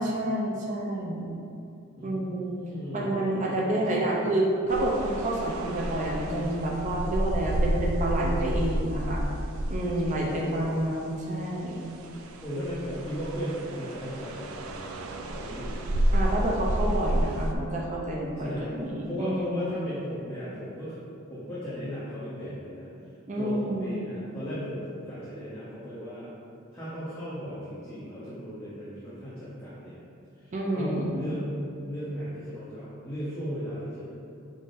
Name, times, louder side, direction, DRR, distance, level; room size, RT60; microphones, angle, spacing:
voice 1, 0.0-1.3 2.0-2.6 2.9-9.2 9.7-11.8 16.1-19.7 23.3-24.0 30.5-31.1, right 1 dB, 35° right, -3 dB, 0.5 m, -29 dB
voice 2, 2.0-4.2 10.1-10.6 12.4-16.1 18.4-18.7 19.0-20.9 21.3-22.9 23.3-26.3 26.7-30.0 30.4-31.5 31.8-34.0, equal, 15° left, -12 dB, 0.9 m, -36 dB
sound 1, 4.7-10.8 11.4-17.5, right 1 dB, 85° right, 0.4 m, -30 dB
5.6 x 3.7 x 2.5 m, 2.6 s
head